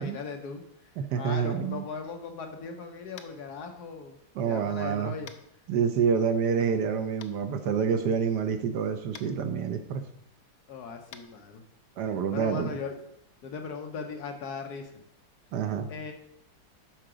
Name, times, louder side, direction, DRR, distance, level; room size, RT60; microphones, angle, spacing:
voice 1, 0.0-4.2 4.4-5.3 10.7-11.6 12.1-13.0 13.4-14.9 15.9-16.1, left 5 dB, 65° left, 5 dB, 1.2 m, -38 dB
voice 2, 1.1-1.8 4.4-5.1 5.7-10.0 12.0-12.7 15.5-15.9, right 6 dB, 70° right, 7 dB, 1.1 m, -27 dB
Tap, 3.1-3.4 5.3-5.4 7.2-7.3 9.1-9.3 11.1-11.2, left 9 dB, 85° left, 1.5 m, -46 dB
7.6 x 5.7 x 5.0 m, 0.75 s
omnidirectional pair, 2.1 m